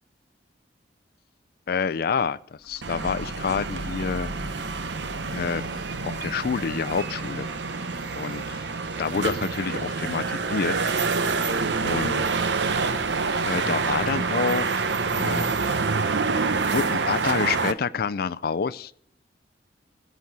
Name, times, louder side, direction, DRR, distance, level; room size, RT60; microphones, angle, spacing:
voice 1, 1.7-4.3 5.3-5.6 6.0-7.5 8.1-8.6 9.0-10.7 11.8-12.5 13.4-14.9 15.1-15.5 16.6-19.0, left 5 dB, 60° left, 15 dB, 0.4 m, -28 dB
sound 1, 2.6-8.4, equal, 10° left, 1.3 m, -41 dB
sound 2, 2.8-17.7, right 4 dB, 80° right, 0.8 m, -27 dB
sound 3, 5.5-13.7, right 1 dB, 10° right, 2.3 m, -48 dB
16.0 x 6.3 x 5.9 m, 0.63 s
head